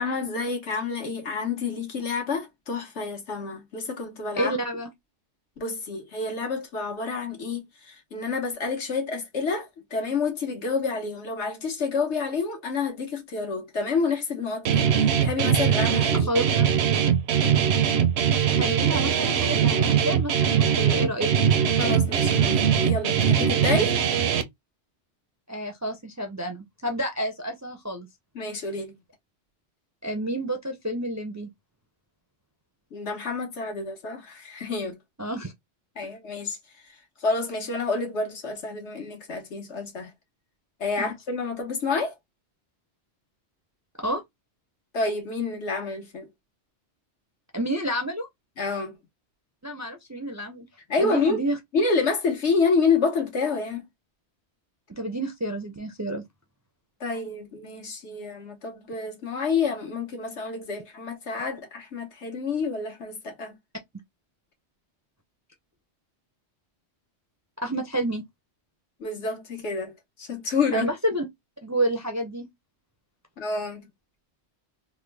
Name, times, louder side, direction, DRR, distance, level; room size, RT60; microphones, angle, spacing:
voice 1, 0.0-4.6 5.6-16.3 21.8-23.9 28.3-28.9 32.9-35.0 36.0-36.6 37.2-40.1 40.8-42.1 44.9-46.3 48.6-49.0 50.9-51.4 51.7-53.8 57.0-63.5 69.0-70.9 73.4-73.8, left 4 dB, 90° left, 1.5 m, -28 dB
voice 2, 4.4-4.9 16.3-16.7 18.5-21.3 25.5-28.1 30.0-31.5 35.2-35.5 41.0-41.1 44.0-44.2 47.5-48.3 49.6-50.7 51.0-51.6 54.9-56.2 67.6-68.2 70.7-71.2 71.6-72.5, right 1 dB, 30° right, 0.3 m, -29 dB
Guitar, 14.6-24.4, right 8 dB, 75° right, 0.8 m, -21 dB
3.5 x 2.1 x 3.3 m
omnidirectional pair, 1.1 m